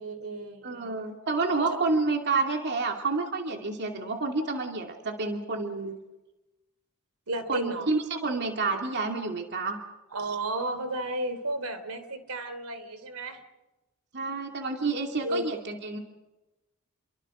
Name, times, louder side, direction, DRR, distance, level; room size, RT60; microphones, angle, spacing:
voice 1, 0.0-0.9 1.6-1.8 7.3-7.9 10.1-13.4 15.2-15.4, right 1 dB, 75° right, 10 dB, 3.1 m, -33 dB
voice 2, 0.6-6.0 7.5-9.8 14.1-16.0, right 3 dB, 55° right, 3 dB, 2.5 m, -29 dB
29.5 x 23.5 x 5.1 m, 1.0 s
head